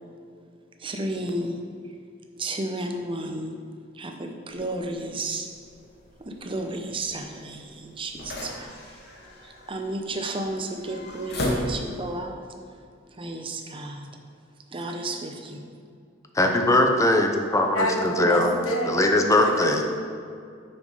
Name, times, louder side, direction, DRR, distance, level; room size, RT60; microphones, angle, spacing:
voice 1, 0.8-1.6 2.4-3.5 4.0-5.5 6.2-8.7 9.4-12.4 13.1-14.1 14.7-15.6, right 2 dB, 25° right, 4 dB, 0.7 m, -32 dB
sound 1, 4.5-12.2, left 1 dB, 55° left, 1.2 m, -36 dB
voice 2, 16.3-18.5 18.9-19.8, left 1 dB, 15° left, 3 dB, 0.6 m, -21 dB
voice 3, 17.7-19.8, equal, 90° left, 1 dB, 1.2 m, -27 dB
6.1 x 6.1 x 5.4 m, 2.3 s
head